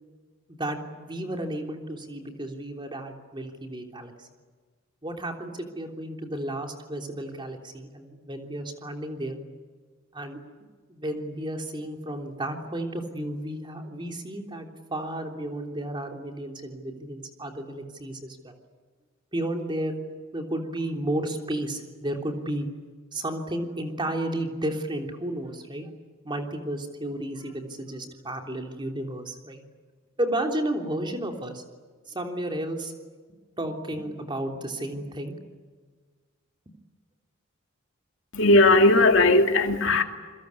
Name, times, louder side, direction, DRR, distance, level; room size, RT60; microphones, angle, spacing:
voice 1, 0.5-4.3 5.0-9.4 10.1-10.4 10.9-18.5 19.3-20.0 20.3-22.7 23.1-25.9 26.2-29.6 30.2-31.6 32.1-32.9 33.6-35.4, right 1 dB, 25° right, 3 dB, 3.3 m, -32 dB
voice 2, 38.3-40.0, left 2 dB, 65° left, 5 dB, 2.5 m, -18 dB
28.5 x 22.5 x 8.5 m, 1.5 s
head